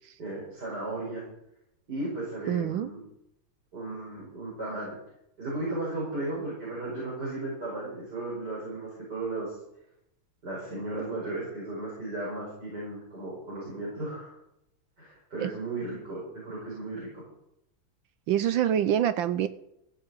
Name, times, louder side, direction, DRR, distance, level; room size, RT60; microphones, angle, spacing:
voice 1, 0.2-1.2 1.9-3.0 3.7-5.0 5.4-9.6 10.4-14.4 15.0-17.3, right 2 dB, 45° right, -5 dB, 5.8 m, -35 dB
voice 2, 2.5-2.9 15.4-15.5 18.3-19.5, right 10 dB, 70° right, 13 dB, 1.3 m, -25 dB
14.5 x 7.8 x 8.2 m, 0.79 s
omnidirectional pair, 2.4 m